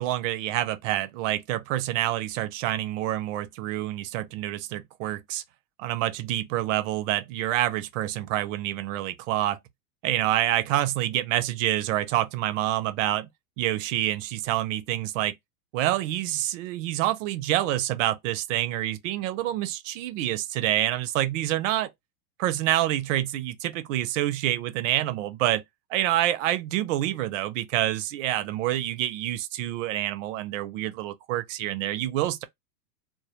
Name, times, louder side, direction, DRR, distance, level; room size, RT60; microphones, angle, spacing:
voice 1, 0.0-5.4 5.8-9.6 10.0-13.3 13.6-15.4 15.7-21.9 22.4-25.6 25.9-32.4, right 14 dB, 55° right, 0.5 m, -27 dB
2.2 x 2.1 x 2.8 m
hypercardioid pair, 120°, 48 cm